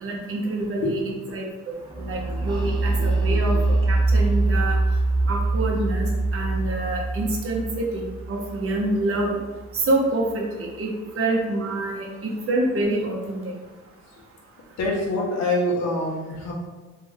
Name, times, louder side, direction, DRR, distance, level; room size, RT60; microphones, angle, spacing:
voice 1, 0.0-1.0 1.3-3.6 3.8-4.8 5.3-9.4 9.7-10.9 11.2-13.5, right 2 dB, 45° right, -1 dB, 1.1 m, -26 dB
sound 1, 1.9-9.6, right 2 dB, 15° right, 1.3 m, -24 dB
voice 2, 14.8-16.5, left 2 dB, 60° left, -3 dB, 1.5 m, -25 dB
3.8 x 3.3 x 3.5 m, 1.3 s
cardioid pair, 90°, 30 cm